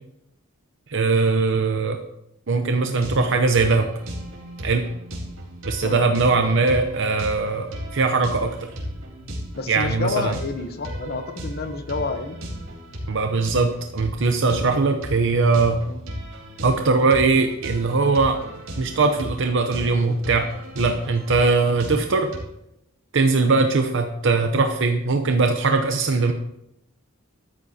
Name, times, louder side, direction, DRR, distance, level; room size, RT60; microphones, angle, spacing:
voice 1, 0.9-2.0 2.5-3.9 4.6-4.8 5.6-8.7 9.7-10.4 13.1-15.8 16.6-18.4 18.8-20.5 20.8-22.3 23.1-26.3, right 3 dB, 65° right, 5 dB, 0.8 m, -20 dB
sound 1, 2.8-22.4, equal, 85° right, 3.9 m, -35 dB
voice 2, 9.5-12.4 14.4-14.6 15.9-16.0 23.6-23.7, left 3 dB, 50° left, 8 dB, 1.0 m, -29 dB
13.0 x 13.0 x 2.8 m, 0.83 s
head